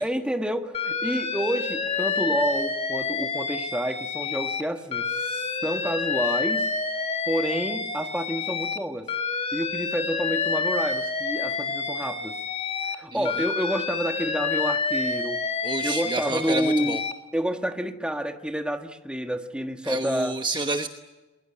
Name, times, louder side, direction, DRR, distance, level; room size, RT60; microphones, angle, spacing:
voice 1, 0.0-6.7 7.3-9.1 9.5-12.4 12.9-15.4 15.8-17.0 17.3-20.3, equal, 5° right, 6 dB, 1.5 m, -29 dB
Alarm, 0.7-4.6 4.9-8.8 9.1-13.0 13.2-17.1, left 4 dB, 30° left, 1.7 m, -28 dB
voice 2, 13.1-13.5 15.6-17.0 19.8-20.9, right 2 dB, 20° right, 6 dB, 1.1 m, -29 dB
22.0 x 22.0 x 9.7 m, 1.1 s
head